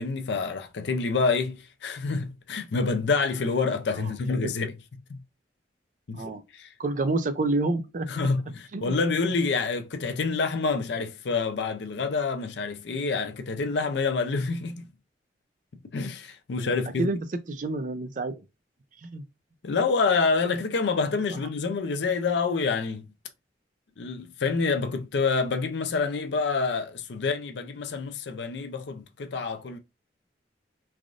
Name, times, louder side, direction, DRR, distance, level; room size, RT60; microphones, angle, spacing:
voice 1, 0.0-4.7 5.1-5.2 6.1-6.7 8.1-14.9 15.9-17.1 19.6-23.1 24.0-29.8, left 4 dB, 70° left, 0.5 m, -27 dB
voice 2, 3.9-4.5 6.1-6.4 6.8-8.1 8.7-9.0 16.6-18.4 19.0-19.2, right 2 dB, 45° right, 0.4 m, -29 dB
3.3 x 2.4 x 2.4 m
head